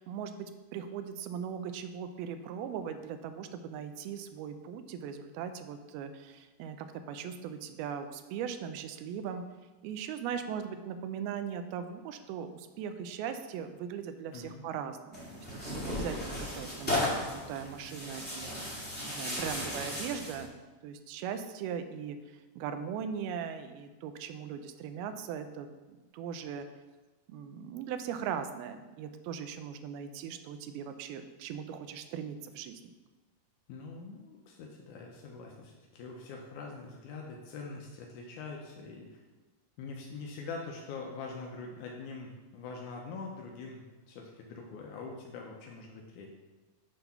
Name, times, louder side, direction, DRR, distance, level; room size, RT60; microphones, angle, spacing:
voice 1, 0.0-9.4 9.8-20.5 20.8-22.2 22.6-25.7 26.1-26.7 27.3-32.8, right 8 dB, 85° right, 9 dB, 2.4 m, -39 dB
voice 2, 14.3-14.6 33.7-39.2 39.8-46.3, left 4 dB, 85° left, 0 dB, 1.8 m, -44 dB
Tearing, 15.1-20.4, left 1 dB, 10° left, 0.5 m, -35 dB
8.0 x 3.7 x 5.6 m, 1.2 s
omnidirectional pair, 4.4 m